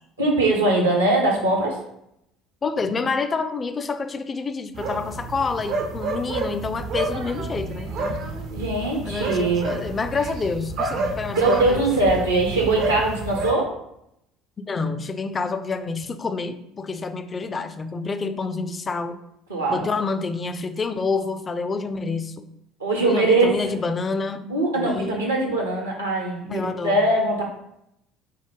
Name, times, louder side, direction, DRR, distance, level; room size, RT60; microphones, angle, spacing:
voice 1, 0.2-1.8 8.5-9.7 11.0-13.7 19.5-19.9 22.8-23.5 24.5-27.4, right 2 dB, 80° right, 0 dB, 0.8 m, -21 dB
voice 2, 2.6-8.2 9.0-11.9 14.7-19.2 19.7-22.5 23.1-24.5 24.8-25.2 26.5-27.1, left 4 dB, 25° left, 9 dB, 0.3 m, -28 dB
sound 1, 4.7-13.5, right 3 dB, 55° right, 0.4 m, -30 dB
4.5 x 2.1 x 3.6 m, 0.79 s
figure-of-eight pair, 60°, 0 cm